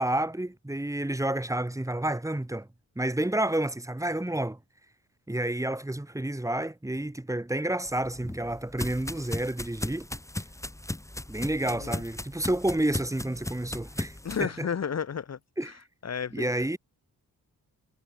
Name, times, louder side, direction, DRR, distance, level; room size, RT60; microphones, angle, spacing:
voice 1, 0.0-2.7 2.9-4.6 5.3-10.1 10.4-10.5 11.3-14.7 15.6-15.8 16.3-16.8, right 1 dB, 10° right, 6.5 m, -30 dB
sound 1, 7.9-14.4, left 1 dB, 10° left, 7.3 m, -37 dB
voice 2, 11.7-12.0 14.2-15.4 16.0-16.5, left 7 dB, 50° left, 1.8 m, -32 dB
wide cardioid pair, 135°, 34 cm